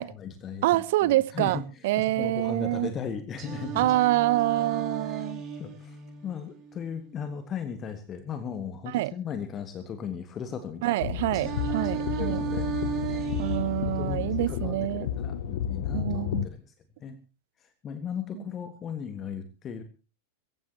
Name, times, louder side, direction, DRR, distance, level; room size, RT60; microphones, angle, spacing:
voice 1, 0.0-3.9 5.0-5.2 5.6-11.0 12.2-12.7 13.4-13.5 13.9-16.7 17.0-17.2 17.6-19.8, left 7 dB, 25° left, 1.6 m, -37 dB
voice 2, 0.6-2.9 3.8-5.4 8.9-9.1 10.8-12.4 13.4-15.1 15.9-16.5 18.3-18.4, right 17 dB, 50° right, 0.7 m, -26 dB
Singing, 3.4-7.4 11.3-15.4, right 6 dB, 30° right, 4.6 m, -35 dB
sound 1, 11.0-16.5, left 10 dB, 55° left, 0.9 m, -32 dB
23.0 x 15.0 x 2.9 m
figure-of-eight pair, 90°, 0 cm